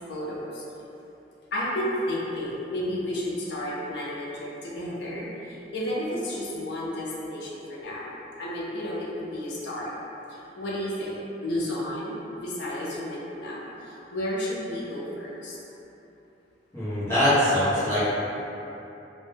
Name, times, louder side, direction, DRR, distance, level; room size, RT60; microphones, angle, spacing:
voice 1, 0.1-0.7 1.5-9.9 10.3-15.6, left 1 dB, 65° left, -6 dB, 0.4 m, -32 dB
voice 2, 16.7-18.1, left 1 dB, 15° left, -14 dB, 0.7 m, -22 dB
2.1 x 2.1 x 3.1 m, 3.0 s
head